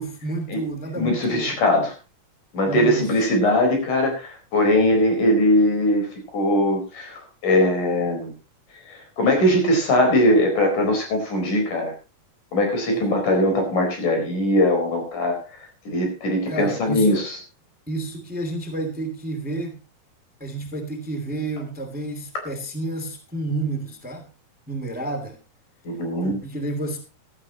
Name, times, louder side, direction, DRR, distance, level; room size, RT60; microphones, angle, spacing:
voice 1, 0.0-1.6 2.7-3.1 12.9-13.1 16.5-17.2 17.9-19.8 20.4-24.3 24.7-25.4 26.2-27.0, right 2 dB, 5° right, 6 dB, 2.0 m, -30 dB
voice 2, 1.0-1.9 2.5-8.3 8.9-11.9 12.5-15.4 15.9-17.4 25.8-26.4, left 1 dB, 80° left, 3 dB, 6.0 m, -21 dB
16.5 x 12.5 x 2.9 m, 0.30 s
omnidirectional pair, 3.6 m